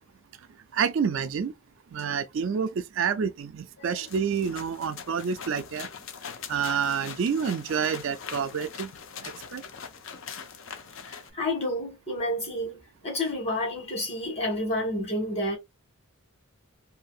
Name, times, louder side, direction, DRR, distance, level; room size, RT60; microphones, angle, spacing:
voice 1, 0.7-1.5 1.9-5.9 6.5-8.9 9.2-9.6, right 6 dB, 55° right, 0.3 m, -28 dB
sound 1, 4.0-11.3, left 6 dB, 60° left, 0.5 m, -42 dB
voice 2, 11.1-12.8 13.0-15.6, left 1 dB, 30° left, 1.4 m, -30 dB
2.7 x 2.6 x 2.3 m
head